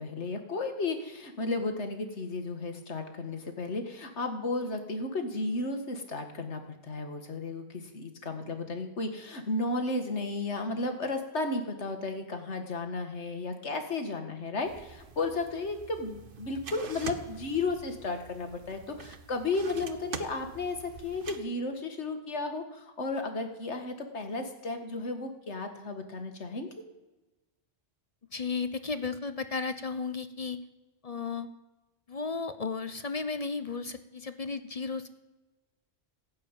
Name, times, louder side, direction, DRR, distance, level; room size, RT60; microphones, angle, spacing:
voice 1, 0.0-26.7, left 3 dB, 90° left, 6 dB, 2.0 m, -34 dB
sound 1, 14.7-21.4, right 5 dB, 55° right, 1.1 m, -45 dB
voice 2, 28.3-30.6 31.0-31.5 32.1-35.1, left 4 dB, 40° left, 11 dB, 0.8 m, -34 dB
16.5 x 7.7 x 9.0 m, 1.1 s
omnidirectional pair, 1.1 m